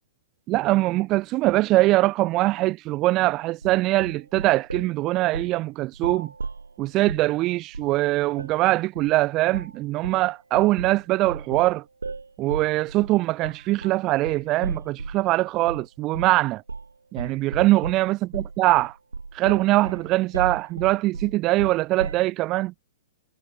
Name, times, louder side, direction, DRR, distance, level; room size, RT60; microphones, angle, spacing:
voice 1, 0.5-6.3 6.8-11.8 12.4-16.6 17.1-19.0 19.3-22.7, right 18 dB, 30° right, 3.7 m, -22 dB
sound 1, 3.6-4.9 5.3-5.6 5.9-7.3 7.7-8.0 8.4-8.6 9.0-9.2 9.5-9.8 10.0-15.3 15.7-15.9 16.1-16.4 16.7-16.9 17.2-22.3, right 4 dB, 70° right, 7.9 m, -35 dB
figure-of-eight pair, 110°, 0 cm